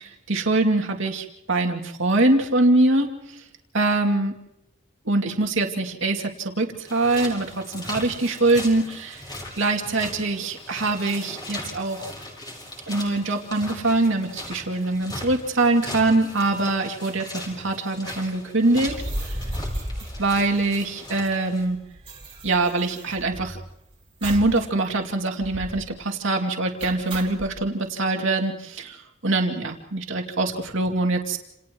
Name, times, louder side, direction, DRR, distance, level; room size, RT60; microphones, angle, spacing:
voice 1, 0.3-3.1 3.7-4.3 5.0-9.2 9.5-12.1 12.9-19.0 19.3-19.4 20.2-21.8 22.4-23.6 24.2-31.4, right 2 dB, 65° right, 2 dB, 2.6 m, -23 dB
sound 1, 6.9-21.7, left 1 dB, 20° left, 5.4 m, -39 dB
sound 2, 18.8-21.0 21.3-21.4 21.6-23.7 24.2-24.6 24.9-25.0 25.4-25.9 26.8-27.5, right 1 dB, 25° right, 3.1 m, -34 dB
29.5 x 28.5 x 3.1 m, 0.83 s
head